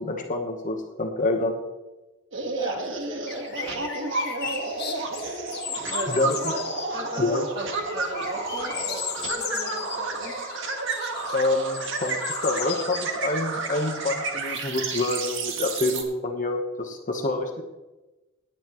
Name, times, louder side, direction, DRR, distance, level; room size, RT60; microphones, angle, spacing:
voice 1, 0.0-1.6 6.1-6.5 7.2-7.5 11.3-17.6, left 2 dB, 40° left, 3 dB, 1.1 m, -27 dB
sound 1, 2.3-16.0, right 3 dB, 65° right, 1.6 m, -31 dB
voice 2, 2.6-3.9 4.4-4.5 5.8-6.6 6.9-10.4, right 1 dB, 25° right, -2 dB, 2.9 m, -36 dB
sound 2, 3.3-7.1 7.7-13.1 13.5-14.1, left 8 dB, 55° left, 1.5 m, -36 dB
17.5 x 9.8 x 3.1 m, 1.1 s
head